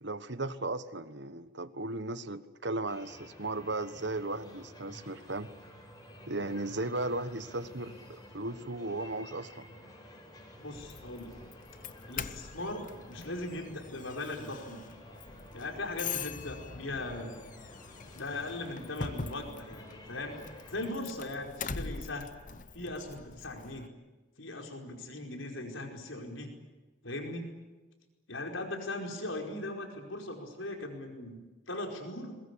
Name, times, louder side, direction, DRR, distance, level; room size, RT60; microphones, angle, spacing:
voice 1, 0.0-5.5 6.3-9.7, right 2 dB, 65° right, 12 dB, 1.3 m, -36 dB
sound 1, 2.9-20.9, left 1 dB, 20° left, 5.6 m, -52 dB
voice 2, 10.6-11.4 12.1-14.8 15.5-17.4 18.2-20.4 20.7-22.3 22.7-23.9 24.4-26.5 27.0-27.5 28.3-32.4, left 2 dB, 85° left, 3 dB, 5.0 m, -39 dB
Doorbell, 10.7-23.9, left 5 dB, 40° left, 0.9 m, -43 dB
22.5 x 21.5 x 10.0 m, 1.2 s
head